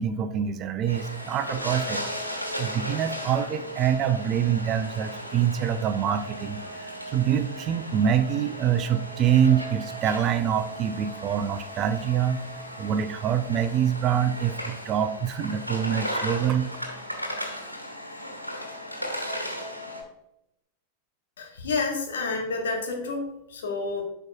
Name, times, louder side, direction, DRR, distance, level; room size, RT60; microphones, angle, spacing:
voice 1, 0.0-2.1 2.6-12.4 12.8-16.7, right 9 dB, 35° right, 11 dB, 0.5 m, -25 dB
sound 1, 0.9-20.0, equal, 90° right, 1.0 m, -36 dB
voice 2, 21.4-24.0, left 3 dB, 60° left, 2 dB, 1.4 m, -29 dB
10.5 x 4.6 x 2.4 m, 0.84 s
figure-of-eight pair, 90°, 0 cm